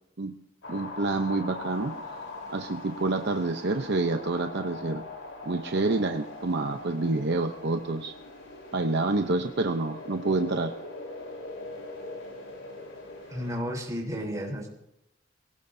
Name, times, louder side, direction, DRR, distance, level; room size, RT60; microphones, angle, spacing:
sound 1, 0.6-13.6, left 2 dB, 85° left, 3.8 m, -42 dB
voice 1, 0.7-1.9 2.5-5.1 5.5-8.1 8.7-10.7, right 3 dB, 60° right, 5 dB, 0.8 m, -28 dB
voice 2, 13.3-14.7, equal, 15° right, -1 dB, 3.7 m, -32 dB
23.0 x 17.5 x 2.7 m, 0.85 s
head